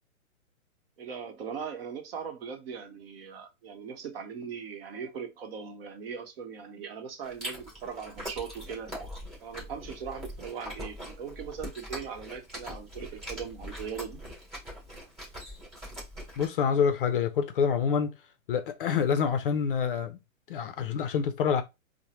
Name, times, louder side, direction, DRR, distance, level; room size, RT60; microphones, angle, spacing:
voice 1, 1.0-8.9 9.4-14.2, right 6 dB, 45° right, 1.0 m, -39 dB
Chewing mastication, 7.2-16.5, equal, 15° right, 2.1 m, -42 dB
voice 2, 16.4-18.1 18.5-20.2 20.5-21.6, left 7 dB, 40° left, 0.5 m, -27 dB
4.5 x 2.1 x 3.0 m
hypercardioid pair, 135°, 41 cm